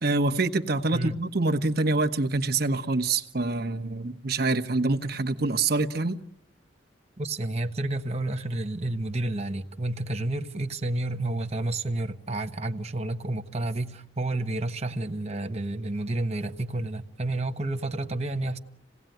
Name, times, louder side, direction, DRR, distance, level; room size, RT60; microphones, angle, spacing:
voice 1, 0.0-6.2, right 3 dB, 55° right, 1.2 m, -26 dB
voice 2, 7.2-18.6, right 2 dB, 35° right, 1.2 m, -30 dB
27.0 x 18.0 x 9.2 m
head